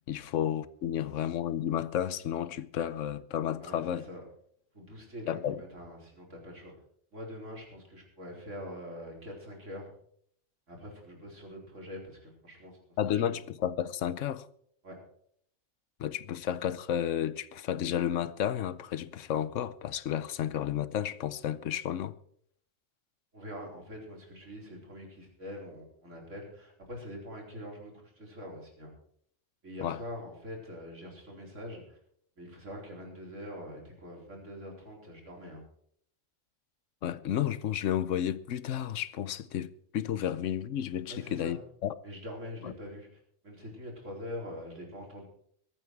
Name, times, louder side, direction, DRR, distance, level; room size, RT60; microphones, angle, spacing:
voice 1, 0.1-4.0 5.3-5.6 13.0-14.5 16.0-22.1 29.8-30.0 37.0-41.9 42.6-42.7, left 10 dB, 90° left, 1.1 m, -32 dB
voice 2, 3.6-4.2 4.7-6.7 7.1-9.9 10.7-12.8 13.1-13.4 14.8-15.0 23.3-28.9 29.6-32.0 32.4-35.6 41.1-41.6 42.0-43.1 43.4-45.3, equal, 85° right, 4.6 m, -44 dB
22.0 x 9.0 x 4.7 m
omnidirectional pair, 1.2 m